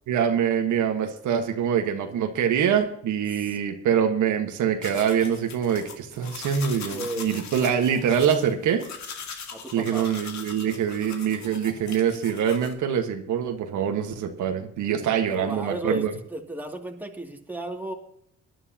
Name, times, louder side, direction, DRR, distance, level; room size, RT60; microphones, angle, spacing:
voice 1, 0.1-8.8 9.7-16.1, right 8 dB, 75° right, 5 dB, 1.4 m, -24 dB
sound 1, 4.8-12.7, left 6 dB, 65° left, 2.1 m, -40 dB
voice 2, 6.9-7.4 9.5-10.1 15.3-16.0 16.3-17.9, right 1 dB, 5° right, 1 dB, 2.4 m, -33 dB
20.5 x 11.0 x 2.9 m, 0.69 s
cardioid pair, 90°, 30 cm